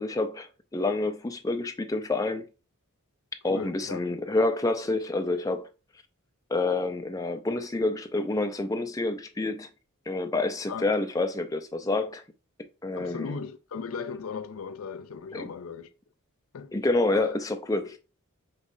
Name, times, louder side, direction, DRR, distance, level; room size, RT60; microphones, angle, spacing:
voice 1, 0.0-2.4 3.4-5.7 6.5-9.7 10.1-12.2 12.8-13.4 15.3-15.5 16.7-18.0, left 2 dB, 15° left, 0.4 m, -28 dB
voice 2, 3.5-4.0 10.7-10.9 12.9-15.9 16.5-16.8 17.1-17.4 17.8-17.9, left 5 dB, 70° left, 0.5 m, -37 dB
5.4 x 3.1 x 2.5 m
head